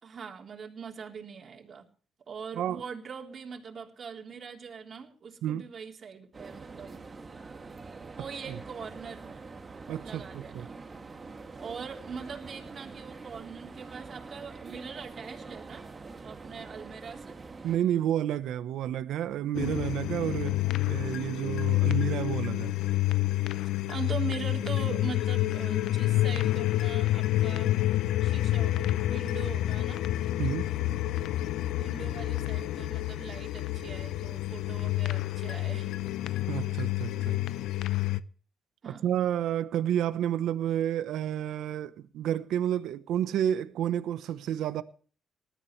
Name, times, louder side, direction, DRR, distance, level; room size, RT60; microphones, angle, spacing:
voice 1, 0.0-1.9 2.3-7.0 8.2-9.4 10.0-10.8 11.6-15.8 16.2-17.3 23.9-27.8 28.2-30.0 31.7-35.9 38.8-39.1, right 6 dB, 50° right, 3.6 m, -42 dB
sound 1, 6.3-17.8, right 4 dB, 30° right, 2.4 m, -45 dB
voice 2, 9.9-10.7 17.6-20.6 20.9-22.7 30.4-30.7 36.5-37.4 38.9-44.8, right 11 dB, 80° right, 1.0 m, -30 dB
sound 2, 19.5-38.2, left 15 dB, 85° left, 0.6 m, -28 dB
20.0 x 13.5 x 3.2 m
cardioid pair, 90°, 0 cm